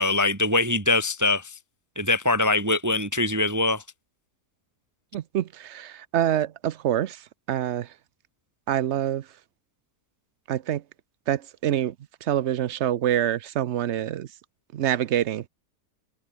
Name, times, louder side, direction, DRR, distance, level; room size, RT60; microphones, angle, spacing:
voice 1, 0.0-1.5 2.0-3.8, left 2 dB, 15° right, 1.0 m, -23 dB
voice 2, 5.1-7.9 8.7-9.3 10.5-10.8 11.3-11.9 12.2-14.3 14.7-15.5, right 11 dB, 60° right, 0.8 m, -26 dB
omnidirectional pair, 1.7 m